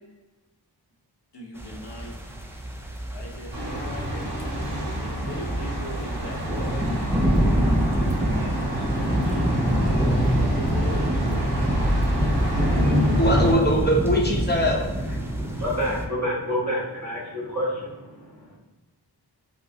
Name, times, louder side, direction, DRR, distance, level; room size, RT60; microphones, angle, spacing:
voice 1, 1.3-2.1 3.1-4.6 5.0-6.8 7.3-9.5 9.8-11.4, equal, 80° left, -3 dB, 1.0 m, -39 dB
sound 1, 1.6-16.0, equal, 5° right, 0.4 m, -26 dB
Thunder, 3.5-13.5, equal, 65° right, 1.3 m, -27 dB
voice 2, 12.6-14.9, equal, 25° left, -1 dB, 0.7 m, -23 dB
voice 3, 15.2-18.6, equal, 40° right, -8 dB, 1.4 m, -29 dB
5.2 x 2.0 x 2.7 m, 1.1 s
wide cardioid pair, 110°, 40 cm